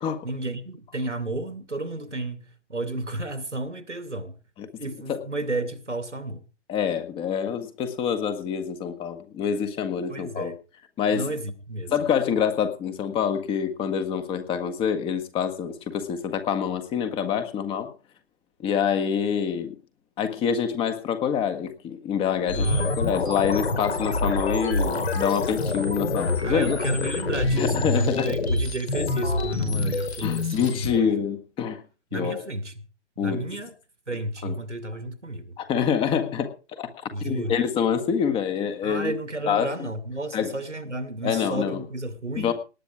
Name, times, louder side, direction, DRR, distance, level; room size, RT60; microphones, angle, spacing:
voice 1, 0.2-4.4 4.8-6.5 10.1-10.6 11.1-11.9 22.5-23.0 26.4-31.1 32.1-32.8 33.2-33.7 34.1-35.6 37.1-37.6 38.8-42.5, right 2 dB, 90° right, 2.3 m, -32 dB
voice 2, 6.7-10.5 11.0-11.3 11.9-17.9 18.6-19.8 20.2-22.7 23.0-26.8 27.5-28.3 30.2-31.8 32.1-32.4 33.2-33.4 34.4-34.6 35.6-36.9 37.2-39.2 39.5-39.9 40.3-40.5 41.2-41.8 42.4-42.5, left 7 dB, 15° left, 1.6 m, -26 dB
sound 1, 22.5-30.9, left 3 dB, 65° left, 5.4 m, -26 dB
18.5 x 9.8 x 4.9 m
figure-of-eight pair, 130°, 35 cm